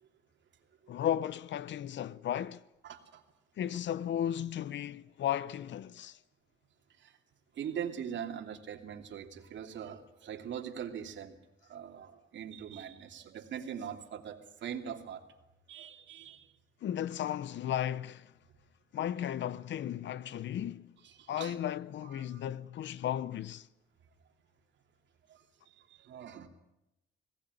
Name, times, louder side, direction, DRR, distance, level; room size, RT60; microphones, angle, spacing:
voice 1, 0.9-2.6 3.6-6.2 16.8-18.3 18.9-20.9 21.3-23.7, left 10 dB, 65° left, 0.9 m, -35 dB
voice 2, 2.8-3.2 7.0-7.2 7.5-11.4 11.6-15.2 15.7-16.5 21.0-21.6 22.0-22.4 25.3-26.5, right 8 dB, 65° right, 2.8 m, -42 dB
26.5 x 18.0 x 9.5 m
cardioid pair, 90°, 20 cm